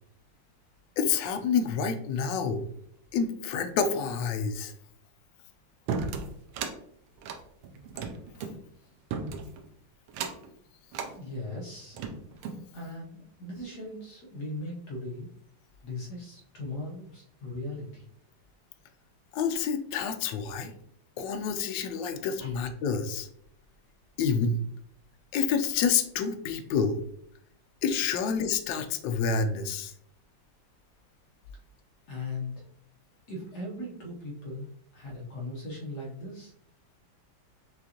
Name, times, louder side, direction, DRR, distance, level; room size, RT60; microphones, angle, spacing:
voice 1, 1.0-2.6 3.1-4.7 19.3-20.7 21.2-23.3 24.2-24.6 25.3-27.0 27.8-29.9, left 6 dB, 75° left, 7 dB, 1.1 m, -28 dB
sound 1, 5.9-6.8 7.2-8.6 9.1-9.6 10.1-10.5 10.9-11.1 11.7-12.6, right 5 dB, 85° right, 1.5 m, -35 dB
voice 2, 11.1-12.0 12.7-15.3 15.8-18.0 22.1-22.5 32.1-32.5 33.3-34.7 34.9-36.5, left 2 dB, 55° left, -3 dB, 1.4 m, -38 dB
6.2 x 2.5 x 2.8 m, 0.70 s
omnidirectional pair, 2.4 m